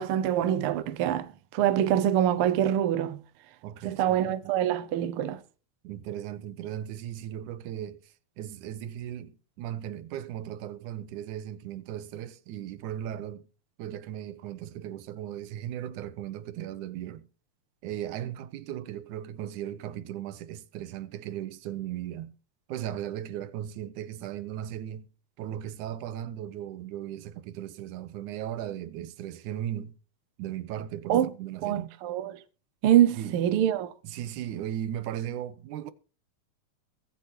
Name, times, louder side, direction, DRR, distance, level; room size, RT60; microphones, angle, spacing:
voice 1, 0.0-3.2 3.8-5.4 31.1-31.3 31.6-32.4 32.8-33.9, right 11 dB, 65° right, 1.4 m, -25 dB
voice 2, 3.6-4.6 5.8-13.5 13.8-17.3 17.8-22.3 22.7-25.1 25.4-30.0 30.4-32.0 33.2-33.4 34.0-35.9, right 11 dB, 80° right, 2.3 m, -37 dB
22.5 x 8.0 x 3.0 m
omnidirectional pair, 3.5 m